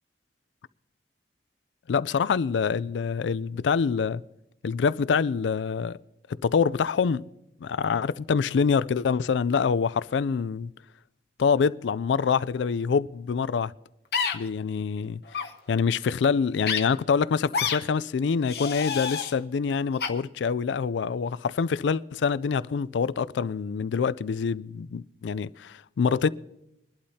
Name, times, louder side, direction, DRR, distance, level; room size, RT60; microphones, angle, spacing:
voice 1, 1.9-4.2 4.6-6.0 6.4-7.2 7.6-10.7 11.4-13.7 14.3-26.3, left 6 dB, 90° left, 0.4 m, -26 dB
sound 1, 14.1-14.4 15.3-15.5 16.6-16.8 17.5-17.8 18.5-19.3 20.0-20.1, left 6 dB, 60° left, 1.0 m, -28 dB
22.5 x 11.5 x 2.8 m
head